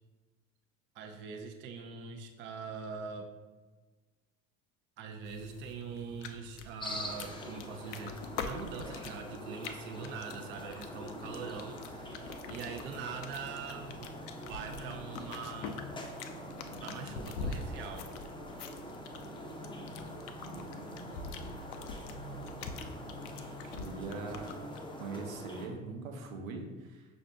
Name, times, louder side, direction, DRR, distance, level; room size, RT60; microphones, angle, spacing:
voice 1, 0.9-3.3 5.0-14.2 14.5-15.8 16.8-18.1, right 5 dB, 30° right, 5 dB, 0.4 m, -43 dB
sound 1, 5.2-24.8, left 3 dB, 60° left, 0.5 m, -45 dB
sound 2, 6.8-25.7, left 1 dB, 10° left, 0.6 m, -44 dB
voice 2, 23.6-24.5 25.0-27.1, right 4 dB, 70° right, 3 dB, 0.8 m, -41 dB
5.7 x 2.6 x 3.3 m, 1.3 s
figure-of-eight pair, 65°, 42 cm